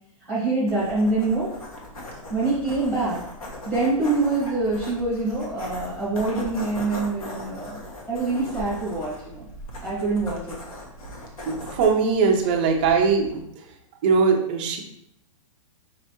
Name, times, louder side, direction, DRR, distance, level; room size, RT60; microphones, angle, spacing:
voice 1, 0.3-1.5 2.3-3.2 3.6-7.8 8.1-9.4 9.8-10.6, right 3 dB, 10° left, -8 dB, 1.3 m, -25 dB
sound 1, 0.7-13.4, left 1 dB, 85° left, 1.2 m, -39 dB
voice 2, 11.5-13.4 14.0-14.8, right 5 dB, 15° right, 0 dB, 0.3 m, -20 dB
5.4 x 3.2 x 2.9 m, 0.77 s
hypercardioid pair, 175°, 18 cm